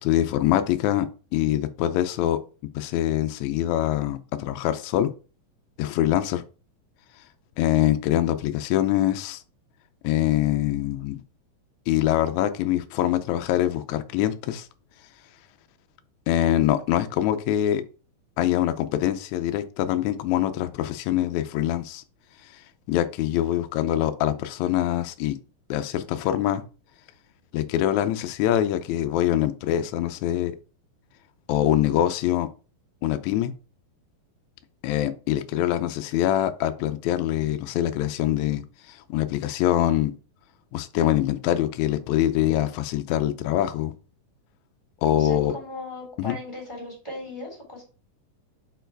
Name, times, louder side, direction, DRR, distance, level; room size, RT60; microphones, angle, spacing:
voice 1, 0.0-1.1 1.3-2.4 2.7-5.1 5.8-6.4 7.6-9.4 10.0-11.2 11.9-14.7 16.3-17.8 18.4-22.0 22.5-22.6 22.9-25.4 25.7-26.6 27.5-30.5 31.5-32.5 33.0-33.5 34.8-40.1 40.7-43.9 45.0-45.5 46.2-46.3, left 12 dB, 85° left, 1.6 m, -24 dB
voice 2, 45.1-47.8, left 2 dB, 10° left, 2.4 m, -37 dB
5.3 x 4.6 x 4.5 m
omnidirectional pair, 4.0 m